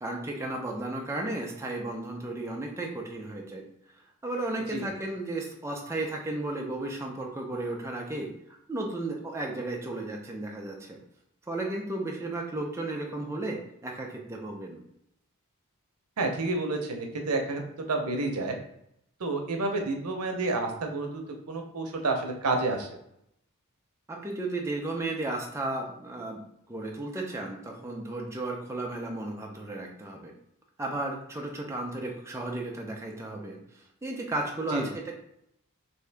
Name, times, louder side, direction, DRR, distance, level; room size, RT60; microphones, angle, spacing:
voice 1, 0.0-3.6 4.2-8.3 8.7-11.0 11.5-14.8 24.1-26.4 26.7-30.3 30.8-33.6 34.0-35.1, right 2 dB, 15° right, 0 dB, 0.5 m, -34 dB
voice 2, 16.2-17.6 17.9-18.6 19.2-23.0 34.7-34.9, right 3 dB, 90° right, 4 dB, 0.7 m, -29 dB
3.5 x 2.7 x 3.3 m, 0.76 s
head